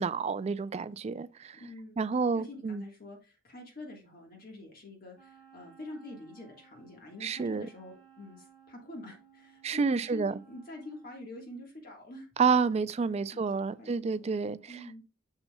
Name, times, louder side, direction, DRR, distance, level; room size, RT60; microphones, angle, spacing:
voice 1, 0.0-1.6 2.0-2.8 7.2-7.7 9.6-10.3 12.4-15.0, right 5 dB, 35° right, 0.3 m, -29 dB
voice 2, 1.5-2.0 2.3-12.3 13.1-14.3 14.7-15.0, left 2 dB, 50° left, 1.5 m, -46 dB
Wind instrument woodwind instrument, 5.1-11.3, right 8 dB, 5° left, 3.0 m, -59 dB
6.9 x 6.8 x 2.2 m
head